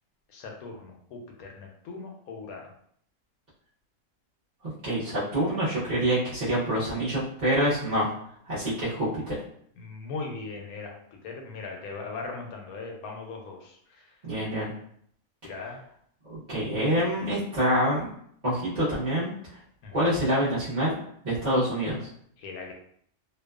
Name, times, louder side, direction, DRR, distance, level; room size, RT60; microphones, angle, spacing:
voice 1, 0.3-2.7 9.8-14.2 15.4-15.8 19.8-20.0 22.4-22.7, left 4 dB, 90° left, 1 dB, 1.1 m, -39 dB
voice 2, 4.8-8.1 8.5-9.4 14.2-14.7 15.4-15.5 16.3-18.1 18.4-19.3 19.9-21.0 21.2-22.1, equal, 40° right, -11 dB, 0.7 m, -26 dB
2.6 x 2.2 x 2.3 m, 0.66 s
omnidirectional pair, 1.5 m